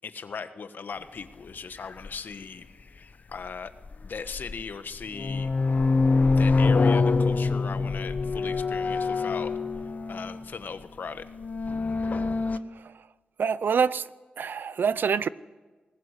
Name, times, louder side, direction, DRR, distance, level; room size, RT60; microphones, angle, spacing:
voice 1, 0.0-2.7 2.9-3.7 4.0-5.5 6.4-9.5 10.1-11.2, left 5 dB, 70° left, 1.4 m, -38 dB
sound 1, 2.0-2.1 3.9-4.6 5.0-10.4 11.2-12.6, left 4 dB, 50° left, 1.1 m, -25 dB
voice 2, 13.4-14.1 14.4-15.3, right 6 dB, 75° right, 0.6 m, -25 dB
21.5 x 18.5 x 8.3 m
cardioid pair, 65°, 3 cm